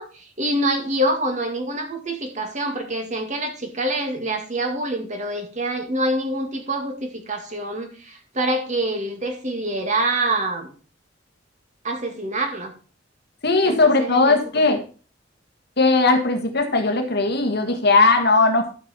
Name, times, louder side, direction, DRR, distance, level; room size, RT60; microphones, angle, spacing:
voice 1, 0.0-10.7 11.8-12.7 13.6-14.4, right 1 dB, 40° right, 4 dB, 2.1 m, -26 dB
voice 2, 13.4-14.8 15.8-18.7, left 3 dB, 60° left, 6 dB, 1.6 m, -18 dB
12.5 x 6.1 x 4.3 m, 0.36 s
head